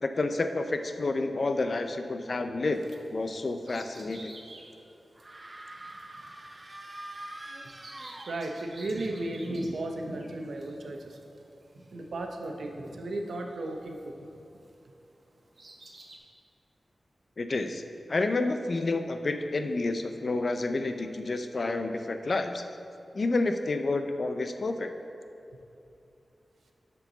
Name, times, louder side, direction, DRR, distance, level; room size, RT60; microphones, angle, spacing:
voice 1, 0.0-2.9 3.1-4.3 17.4-17.8 18.1-22.6 23.1-24.9, left 2 dB, 45° left, 7 dB, 0.5 m, -29 dB
Bird vocalization bird call bird song, 2.7-14.8 15.3-16.2, right 1 dB, 60° right, 1.0 m, -48 dB
sound 1, 5.2-8.8, right 1 dB, 25° right, 0.4 m, -44 dB
voice 2, 8.3-11.2 11.9-14.0, right 1 dB, 85° right, 3 dB, 0.7 m, -35 dB
13.0 x 4.5 x 3.9 m, 2.7 s
wide cardioid pair, 130°, 0 cm